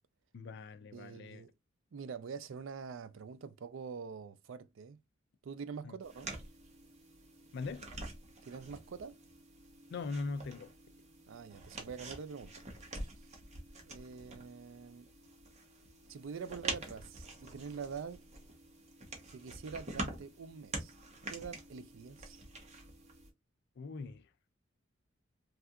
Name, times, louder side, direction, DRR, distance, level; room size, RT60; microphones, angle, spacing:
voice 1, 0.3-1.4 5.8-6.0 7.5-7.9 9.9-10.7 23.8-24.3, left 4 dB, 60° left, 0.4 m, -41 dB
voice 2, 0.9-1.5 1.9-5.0 5.4-6.4 8.5-9.2 11.3-12.6 13.0-13.1 13.9-15.1 16.1-18.2 19.3-20.9 21.3-22.4, right 6 dB, 75° right, 0.4 m, -45 dB
sound 1, 6.0-23.3, right 2 dB, 35° right, 0.9 m, -46 dB
3.3 x 2.7 x 2.3 m
head